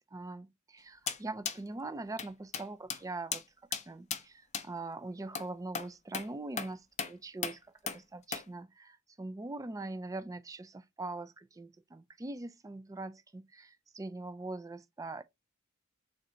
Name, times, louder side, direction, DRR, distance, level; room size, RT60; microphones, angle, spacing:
voice 1, 0.1-3.4 3.9-15.2, right 2 dB, 15° right, 0.3 m, -42 dB
sound 1, 1.1-1.2 1.5-1.6 2.2-2.3 2.5-2.7 2.9-3.0 3.3-3.4 3.7-3.8 4.1-4.2 4.5-4.7 5.4-5.5 5.8-5.9 6.1-6.3 6.6-6.7 7.0-7.1 7.4-7.6 7.9-8.0 8.3-8.5, left 7 dB, 35° left, 0.6 m, -36 dB
3.8 x 2.6 x 4.3 m
head